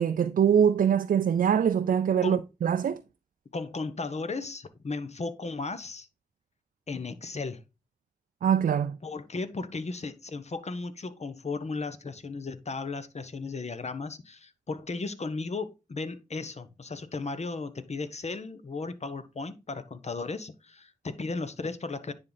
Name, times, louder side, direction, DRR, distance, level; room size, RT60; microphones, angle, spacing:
voice 1, 0.0-3.0 8.4-9.0, right 8 dB, 80° right, 0.4 m, -23 dB
voice 2, 3.5-6.1 6.9-7.6 9.0-22.1, left 3 dB, 50° left, 1.0 m, -35 dB
9.8 x 3.7 x 4.0 m
cardioid pair, 50°, 14 cm